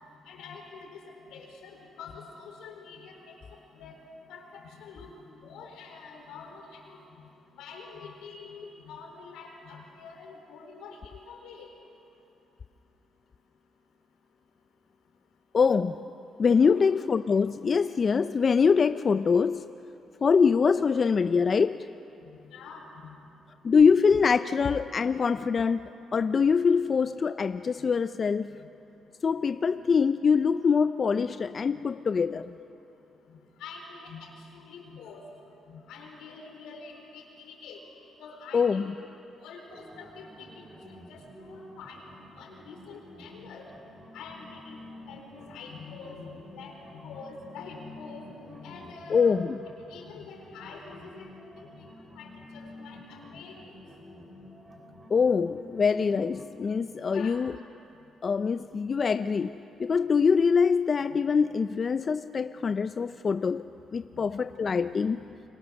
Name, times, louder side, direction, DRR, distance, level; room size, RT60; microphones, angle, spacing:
voice 1, 0.3-3.4 3.7-4.0 4.3-7.0 7.5-11.7 16.5-16.9 22.4-23.2 27.8-27.9 29.6-29.7 33.3-35.2 35.7-37.8 38.2-38.9 39.4-43.7 44.1-44.8 45.1-49.5 49.9-51.5 51.8-51.9 52.2-53.8 57.1-57.4 64.1-64.3, left 4 dB, 90° left, 2 dB, 4.3 m, -46 dB
voice 2, 15.5-16.0 16.4-19.7 20.2-21.9 23.6-28.6 29.2-32.5 38.5-38.9 49.1-49.4 55.1-57.6 58.2-63.7 63.9-65.2, left 5 dB, 40° left, 11 dB, 0.5 m, -24 dB
sound 1, 39.7-56.5, left 1 dB, 25° right, 3.9 m, -49 dB
28.5 x 23.5 x 6.5 m, 2.8 s
cardioid pair, 90°, 0 cm